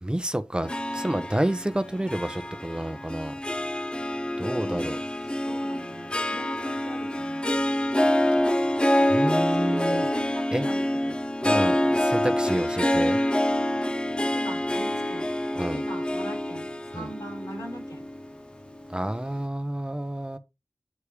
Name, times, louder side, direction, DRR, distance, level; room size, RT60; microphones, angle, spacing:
voice 1, 0.0-3.3 4.4-5.0 9.1-10.1 10.5-10.6 11.4-13.2 15.6-15.8 16.9-17.1 18.9-20.4, right 1 dB, 15° right, 0.8 m, -29 dB
Harp, 0.6-19.1, left 1 dB, 15° left, 0.5 m, -26 dB
voice 2, 4.5-5.0 5.3-7.5 9.4-11.2 11.6-12.0 14.3-15.3 15.7-18.0, equal, 85° left, 4.6 m, -42 dB
8.5 x 3.3 x 4.9 m
wide cardioid pair, 75°, 6 cm